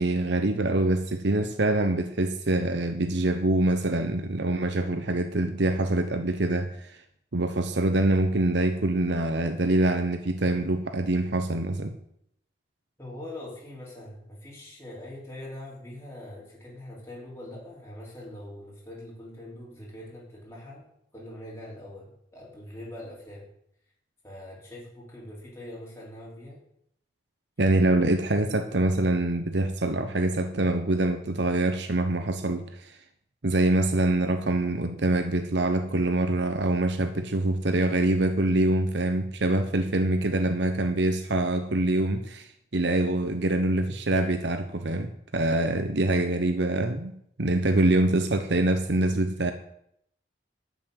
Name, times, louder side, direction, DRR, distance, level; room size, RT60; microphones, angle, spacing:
voice 1, 0.0-7.0 7.3-11.9 27.6-33.0 33.4-47.1 47.4-49.5, right 2 dB, 75° right, 8 dB, 1.0 m, -25 dB
voice 2, 13.0-20.9 21.1-23.5 24.2-26.6, left 1 dB, 15° left, -5 dB, 3.2 m, -43 dB
13.0 x 6.2 x 9.1 m, 0.72 s
head